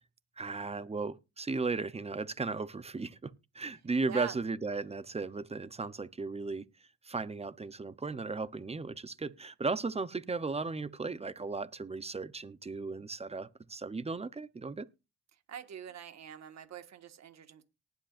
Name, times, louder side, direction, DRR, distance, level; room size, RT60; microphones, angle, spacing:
voice 1, 0.4-6.7 7.0-14.9, right 3 dB, 20° right, 0.8 m, -36 dB
voice 2, 15.5-17.6, right 9 dB, 60° right, 1.7 m, -44 dB
19.0 x 7.6 x 2.6 m
cardioid pair, 90°, 30 cm